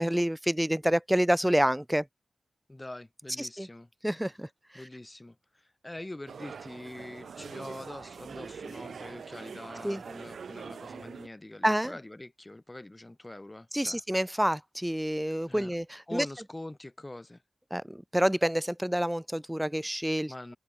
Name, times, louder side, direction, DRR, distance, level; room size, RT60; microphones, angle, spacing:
voice 1, 0.0-2.0 3.4-3.7 4.0-4.5 9.8-10.0 11.6-11.9 13.7-16.2 17.7-20.5, equal, 5° right, 0.7 m, -28 dB
voice 2, 2.7-3.9 4.7-14.0 15.4-15.7 16.1-17.4 20.3-20.6, left 1 dB, 15° left, 3.4 m, -44 dB
sound 1, 6.3-11.3, right 6 dB, 85° right, 2.6 m, -43 dB
wide cardioid pair, 115°, 0 cm